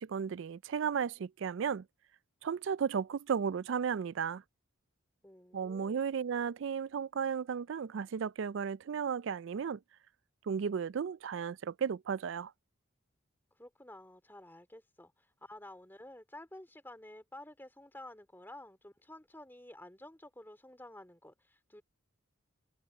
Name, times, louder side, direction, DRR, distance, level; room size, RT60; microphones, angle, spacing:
voice 1, 0.0-1.8 2.4-4.4 5.5-9.8 10.5-12.5, right 7 dB, 60° right, 0.4 m, -34 dB
voice 2, 5.2-6.0 13.6-21.8, left 1 dB, 10° left, 2.4 m, -51 dB
head